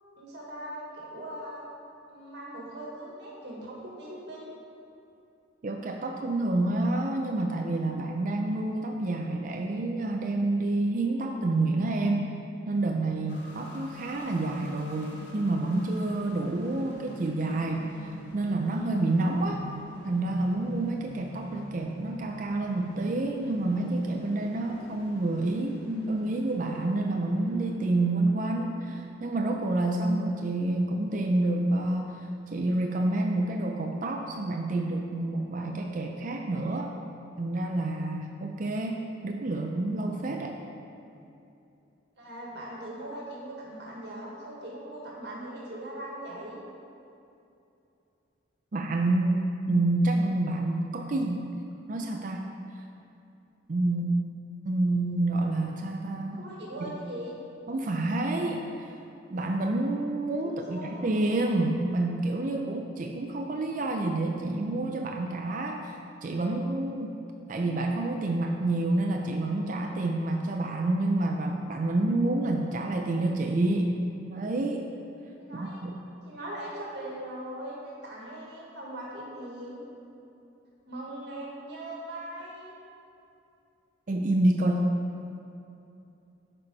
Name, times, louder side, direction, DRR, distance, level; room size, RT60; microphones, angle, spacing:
voice 1, 0.2-1.6 2.1-4.5 42.2-46.6 56.3-57.3 60.4-61.1 75.4-75.8 76.2-79.8 80.9-82.7, right 1 dB, 65° right, -4 dB, 1.5 m, -40 dB
voice 2, 5.6-12.3 12.7-19.6 20.0-36.9 37.4-40.5 48.7-51.5 51.9-52.4 52.7-52.8 53.7-54.1 54.6-56.4 57.7-58.7 59.3-67.2 67.5-73.9 74.3-74.9 75.5-76.0 84.1-84.9, right 2 dB, 45° right, 2 dB, 0.5 m, -28 dB
sound 1, 13.3-31.8, equal, 65° left, 1.5 m, -46 dB
9.6 x 4.4 x 5.3 m, 2.7 s
head